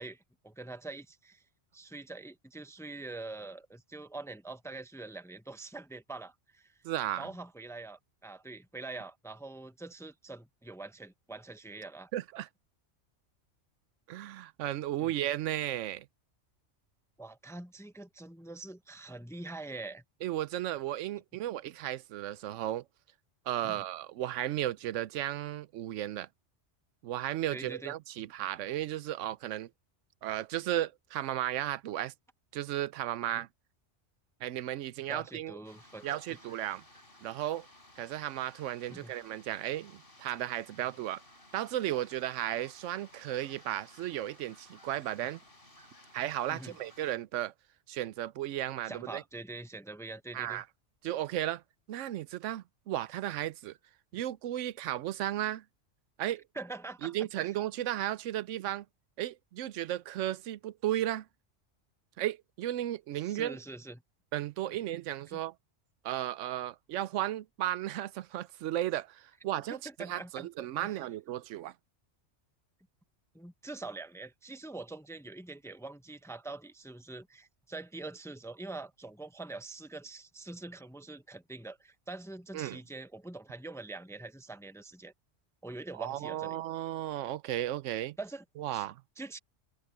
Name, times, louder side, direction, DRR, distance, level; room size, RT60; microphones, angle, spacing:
voice 1, 0.0-1.4 1.7-6.8 7.2-12.1 15.0-15.1 17.2-20.0 23.6-23.8 27.5-27.9 35.1-36.1 38.9-39.1 46.5-46.8 48.9-50.6 56.5-57.1 63.2-64.0 65.3-65.4 69.7-70.5 70.8-71.0 73.3-85.1 85.6-86.6 88.2-88.4 88.7-88.8 89.2-89.4, right 3 dB, 5° left, 0.6 m, -44 dB
voice 2, 6.8-7.3 12.1-12.5 14.1-16.1 20.2-22.8 23.5-26.3 27.0-29.7 30.2-32.1 32.5-33.5 34.4-35.6 36.0-36.8 37.2-37.7 38.0-41.2 41.5-45.4 46.1-47.5 47.9-49.2 50.3-50.6 51.0-51.6 51.9-53.7 54.1-55.6 56.2-56.4 57.0-58.8 59.2-61.3 62.2-63.6 64.3-65.5 66.0-71.7 82.5-82.8 86.0-88.2 88.6-89.0, right 13 dB, 90° right, 0.9 m, -34 dB
sound 1, 35.6-47.1, left 1 dB, 50° left, 5.4 m, -57 dB
omnidirectional pair, 1.2 m